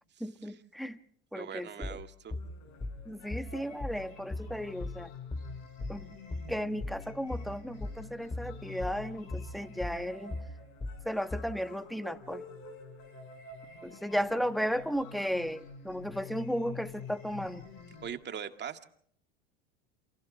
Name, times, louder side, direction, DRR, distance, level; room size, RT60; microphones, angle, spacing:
voice 1, 0.2-1.0 1.3-2.0 3.0-5.1 5.9-6.1 6.5-10.4 11.0-12.4 13.8-17.6, equal, ahead, 1.2 m, -35 dB
voice 2, 1.3-2.3 18.0-18.8, right 8 dB, 30° right, 2.1 m, -41 dB
sound 1, 1.8-11.6, left 2 dB, 15° left, 2.0 m, -39 dB
sound 2, 2.3-18.2, left 4 dB, 60° left, 5.6 m, -48 dB
29.0 x 27.5 x 3.3 m
hypercardioid pair, 85°, 33 cm